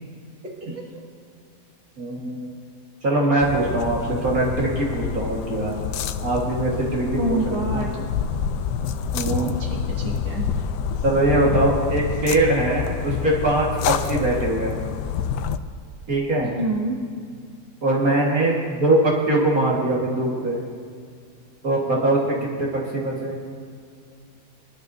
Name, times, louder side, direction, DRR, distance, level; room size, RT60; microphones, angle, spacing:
voice 1, 2.0-2.5 3.0-5.7 6.2-7.8 9.1-9.6 11.0-14.8 16.1-16.5 17.8-20.6 21.6-23.4, right 2 dB, 60° right, -3 dB, 2.1 m, -22 dB
sound 1, 3.4-15.6, left 7 dB, 85° left, 1.2 m, -27 dB
voice 2, 7.2-8.1 9.6-10.5 16.4-17.0, right 2 dB, 35° right, -3 dB, 2.0 m, -27 dB
22.0 x 11.5 x 2.6 m, 2.2 s
omnidirectional pair, 1.8 m